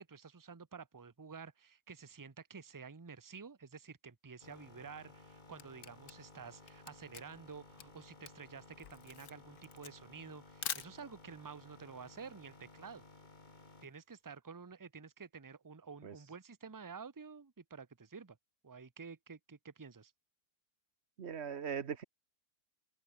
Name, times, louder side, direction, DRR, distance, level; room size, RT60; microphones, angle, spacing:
voice 1, 0.0-13.0 13.8-18.4 18.6-20.1, right 5 dB, 20° right, 0.5 m, -51 dB
sound 1, 4.4-14.0, left 3 dB, 25° left, 2.4 m, -58 dB
Camera, 5.1-11.4, left 8 dB, 65° left, 1.8 m, -46 dB
voice 2, 21.2-22.0, right 7 dB, 45° right, 1.3 m, -40 dB
open air
omnidirectional pair, 1.7 m